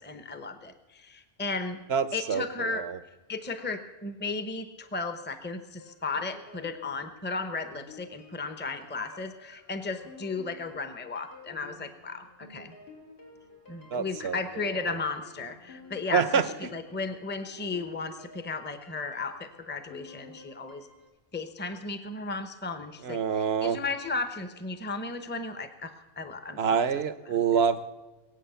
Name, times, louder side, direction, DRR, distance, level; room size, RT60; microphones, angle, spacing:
voice 1, 0.0-1.8 2.1-2.8 3.3-12.7 13.7-16.4 16.7-20.9 21.3-26.6 27.5-27.6, left 4 dB, 10° left, 9 dB, 0.8 m, -35 dB
voice 2, 1.9-3.0 13.9-14.4 14.7-14.9 16.1-16.5 23.0-23.8 26.6-27.8, right 7 dB, 80° right, 14 dB, 1.1 m, -26 dB
sound 1, 5.8-21.1, left 3 dB, 75° left, 3.1 m, -52 dB
21.5 x 8.3 x 6.9 m, 1.2 s
omnidirectional pair, 1.0 m